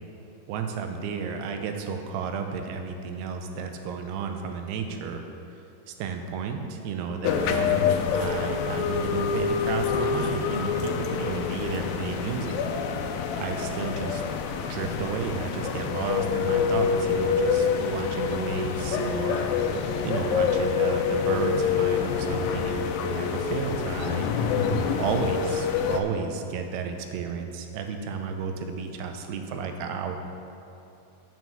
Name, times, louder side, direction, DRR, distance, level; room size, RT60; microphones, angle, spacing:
voice 1, 0.5-5.3 5.9-12.6 13.4-14.2 14.7-19.5 20.0-24.3 25.0-30.2, right 5 dB, 90° right, 5 dB, 2.8 m, -32 dB
sound 1, 7.2-26.0, left 6 dB, 80° left, 2.1 m, -26 dB
7.3 x 6.1 x 7.0 m, 2.8 s
omnidirectional pair, 4.6 m